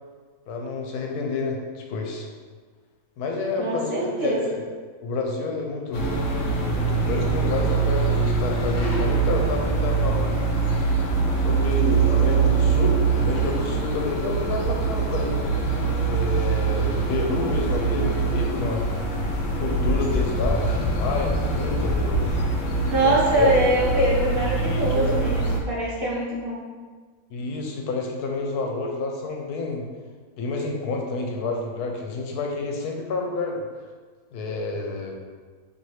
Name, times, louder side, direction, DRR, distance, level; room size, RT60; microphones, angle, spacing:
voice 1, 0.5-2.3 3.2-4.7 5.0-6.1 6.7-10.4 11.4-15.5 16.0-18.9 19.6-22.5 23.0-23.5 23.9-24.0 24.6-25.2 27.3-29.8 30.4-33.6 34.3-35.2, left 3 dB, 85° left, 1 dB, 1.2 m, -29 dB
voice 2, 3.6-4.4 22.8-26.6, right 1 dB, 45° right, -6 dB, 0.9 m, -23 dB
sound 1, 5.9-25.6, right 4 dB, 70° left, 0.6 m, -23 dB
4.2 x 2.8 x 3.1 m, 1.5 s
omnidirectional pair, 1.6 m